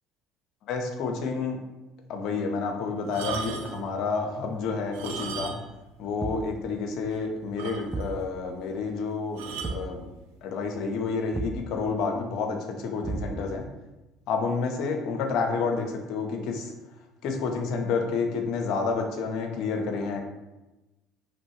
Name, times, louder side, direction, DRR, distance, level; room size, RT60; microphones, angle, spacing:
voice 1, 0.7-1.6 2.1-5.6 6.0-10.0 10.4-13.7 14.3-16.7 17.2-20.2, left 4 dB, 65° left, 3 dB, 0.7 m, -29 dB
sound 1, 3.0-3.9 4.8-5.8 6.1-6.2 6.8-6.9 7.1-7.2 7.6-8.2 9.4-9.8 10.7-10.9, right 5 dB, 75° right, 0.4 m, -36 dB
Thump thud, 6.2-6.6 7.9-8.2 9.6-10.0 11.3-11.7 13.0-13.6, right 3 dB, 20° right, 0.4 m, -34 dB
3.0 x 2.6 x 4.3 m, 1.0 s
hypercardioid pair, 70°, 0 cm